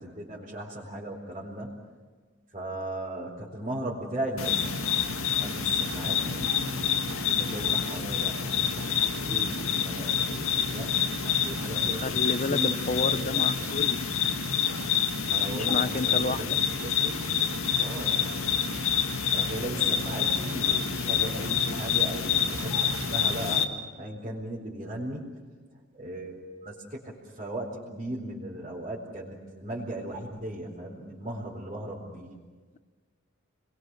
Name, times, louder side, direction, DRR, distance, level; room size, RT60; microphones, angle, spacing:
voice 1, 0.0-1.7 2.5-4.9 5.4-12.2 12.5-13.5 15.3-16.4 16.8-17.3 17.8-18.3 19.3-23.6 24.0-25.2 26.0-32.3, right 1 dB, 30° right, -5 dB, 4.3 m, -37 dB
sound 1, 4.4-23.6, left 7 dB, 85° left, 1.9 m, -27 dB
voice 2, 12.0-14.0 15.4-16.6, left 3 dB, 35° left, 15 dB, 0.6 m, -31 dB
30.0 x 22.0 x 6.4 m, 1.5 s
head